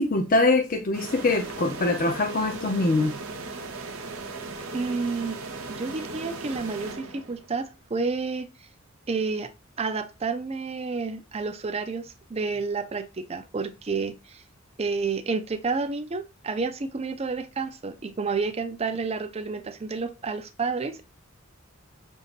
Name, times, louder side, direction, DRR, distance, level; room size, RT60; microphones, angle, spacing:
voice 1, 0.0-3.1, left 2 dB, 40° left, 0.5 m, -23 dB
sound 1, 0.9-7.6, right 3 dB, 80° right, 0.9 m, -37 dB
voice 2, 4.7-5.4 5.7-8.5 9.1-9.5 9.8-14.4 14.8-21.0, right 4 dB, 30° right, 0.5 m, -30 dB
6.9 x 2.6 x 2.5 m
head